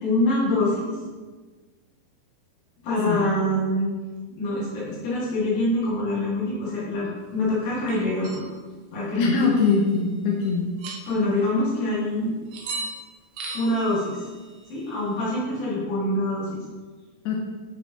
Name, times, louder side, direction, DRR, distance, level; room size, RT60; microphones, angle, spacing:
voice 1, 0.0-0.9 2.8-4.0 4.3-8.4 8.9-9.5 11.1-12.3 13.5-14.2 14.7-16.6, left 1 dB, 60° left, -7 dB, 3.2 m, -25 dB
sound 1, 7.9-8.5 9.4-10.0 10.4-10.5 10.8-11.4 12.5-13.0 13.3-15.3, right 3 dB, 75° right, 2.7 m, -38 dB
voice 2, 9.2-10.7 17.3-17.4, left 5 dB, 85° left, -1 dB, 1.8 m, -22 dB
7.4 x 6.0 x 2.8 m, 1.4 s
omnidirectional pair, 4.4 m